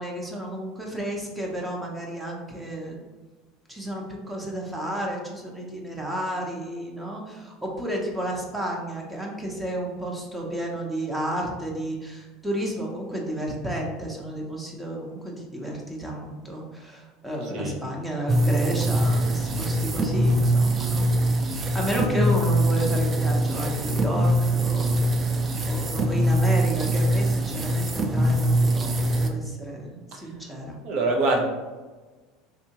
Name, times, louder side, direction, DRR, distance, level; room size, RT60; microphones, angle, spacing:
voice 1, 0.0-3.0 3.7-30.7, right 1 dB, 10° right, -1 dB, 0.8 m, -32 dB
sound 1, 18.3-29.3, right 1 dB, 30° right, 0.4 m, -23 dB
voice 2, 30.8-31.5, right 2 dB, 60° right, 1 dB, 0.8 m, -23 dB
3.5 x 2.6 x 2.9 m, 1.3 s
supercardioid pair, 100°, 0 cm